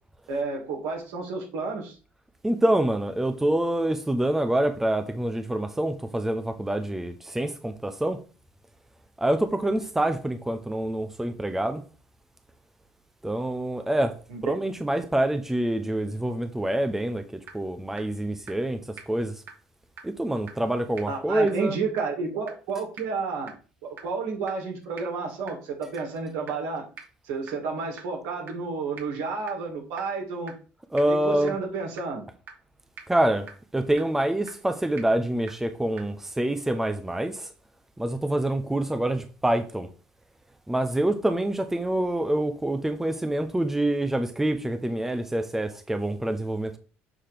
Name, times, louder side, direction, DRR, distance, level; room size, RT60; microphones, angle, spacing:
voice 1, 0.3-2.0 14.3-14.6 21.1-23.5 23.8-26.9 27.2-30.5 31.1-32.2, right 4 dB, 80° right, 2.6 m, -31 dB
voice 2, 2.4-8.2 9.2-11.8 13.2-14.1 14.4-19.3 20.0-21.8 30.9-31.6 33.1-33.5 33.7-37.5 38.0-39.9 40.7-46.8, right 1 dB, 10° right, 0.8 m, -26 dB
sound 1, 17.5-17.6 18.0-18.1 18.5-18.6 19.0-19.1 19.5-19.6 20.0-20.1 20.5-20.6 21.0-21.1 21.5-21.6 22.0-22.1 22.5-22.6 23.0-23.1 23.5-23.6 24.0-24.1 24.5-24.6 25.0-25.1 25.5-25.6 26.0-26.1 26.5-26.6 27.0-27.1 27.5-27.6 28.0-28.1 28.5-28.6 29.0-29.1 29.5-29.6 30.0-30.1 30.5-30.6 31.0-31.1 31.5-31.6 32.0-32.1 32.5-32.6 33.0-33.1 33.5-33.6 34.0-34.1 34.5-34.6 35.0-35.1 35.5-35.6 36.0-36.1, right 6 dB, 55° right, 1.9 m, -41 dB
6.9 x 3.2 x 5.9 m
supercardioid pair, 95°, 4 cm